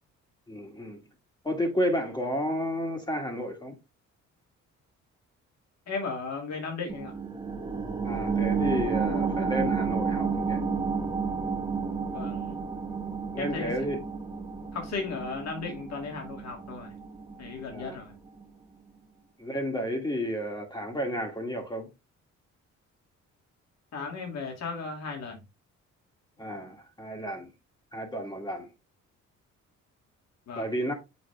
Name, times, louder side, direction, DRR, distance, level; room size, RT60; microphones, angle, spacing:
voice 1, 0.5-1.0 1.4-3.7 8.0-10.6 13.3-14.0 17.7-18.0 19.4-21.9 26.4-27.5 27.9-28.7 30.6-30.9, equal, 15° left, 1.9 m, -31 dB
voice 2, 5.9-7.2 12.1-12.6 13.4-13.8 14.7-16.9 17.4-18.1 23.9-25.4 30.5-30.7, left 4 dB, 60° left, 2.6 m, -35 dB
sound 1, 6.9-18.0 18.4-18.5, right 5 dB, 15° right, 1.3 m, -31 dB
6.8 x 4.3 x 3.5 m
cardioid pair, 90°, 30 cm